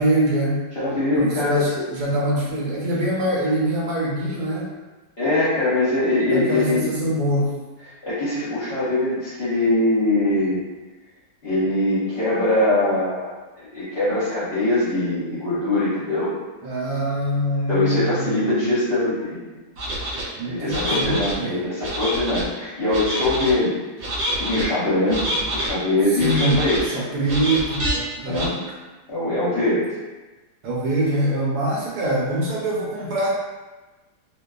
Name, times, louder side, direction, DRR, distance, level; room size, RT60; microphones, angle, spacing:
voice 1, 0.0-0.6 1.2-4.7 6.3-7.5 16.6-18.5 20.4-21.6 26.2-28.5 30.6-33.4, right 1 dB, 90° right, -4 dB, 1.1 m, -24 dB
voice 2, 0.8-1.7 5.2-6.9 7.8-10.6 11.4-16.3 17.7-19.4 20.1-23.8 24.1-26.8 28.2-28.5 29.1-29.9, left 2 dB, 50° left, -11 dB, 0.8 m, -22 dB
sound 1, 19.8-20.2 20.7-21.3 21.8-22.5 22.9-23.5 24.0-24.6 25.1-25.7 26.2-26.8 27.3-27.9 28.3-28.5, right 1 dB, 60° right, 0.8 m, -27 dB
2.5 x 2.2 x 2.2 m, 1.2 s
omnidirectional pair, 1.6 m